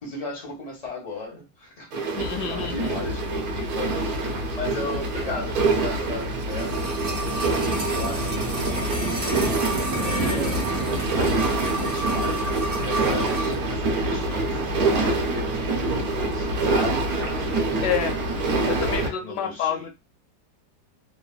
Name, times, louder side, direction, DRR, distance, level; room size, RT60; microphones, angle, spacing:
voice 1, 0.0-2.0 2.3-3.9 4.5-6.9 7.9-9.7 10.0-10.6 11.2-17.3 18.8-19.9, left 2 dB, 45° left, 0.5 m, -36 dB
sound 1, 1.9-19.1, right 2 dB, 65° right, 1.0 m, -26 dB
voice 2, 2.2-3.0 17.8-18.2 18.6-19.9, left 7 dB, 75° left, 1.1 m, -28 dB
sound 2, 6.4-13.6 13.9-14.0, right 2 dB, 85° right, 0.5 m, -30 dB
3.3 x 2.0 x 2.3 m
omnidirectional pair, 2.0 m